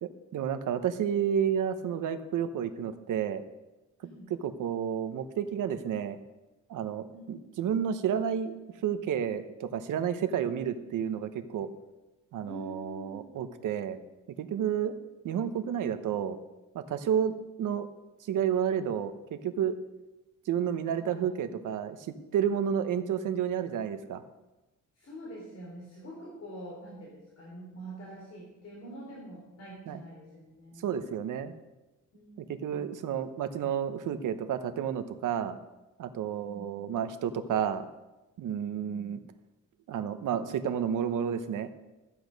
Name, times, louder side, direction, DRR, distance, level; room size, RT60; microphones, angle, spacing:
voice 1, 0.0-3.4 4.4-6.2 6.7-8.6 8.8-11.7 12.3-14.0 14.4-15.0 15.2-16.4 16.7-17.9 18.3-19.7 20.5-22.0 22.3-24.2 29.9-30.0 30.8-31.5 32.4-35.6 36.0-37.9 38.4-39.2 39.9-41.7, right 8 dB, 85° right, 10 dB, 1.0 m, -31 dB
voice 2, 12.4-13.3 20.9-21.5 25.0-30.9 32.1-32.9 36.2-36.7 38.6-39.2, right 1 dB, 55° left, -4 dB, 3.8 m, -46 dB
14.0 x 8.2 x 5.3 m, 1.1 s
cardioid pair, 130°, 31 cm